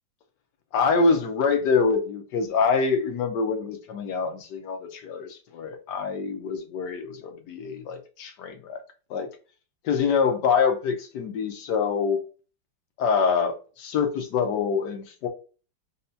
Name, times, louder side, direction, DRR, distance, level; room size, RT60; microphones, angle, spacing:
voice 1, 0.7-8.8 9.1-9.3 9.8-12.2 13.0-15.3, left 5 dB, 65° left, 1.4 m, -25 dB
5.6 x 2.6 x 2.7 m
omnidirectional pair, 2.2 m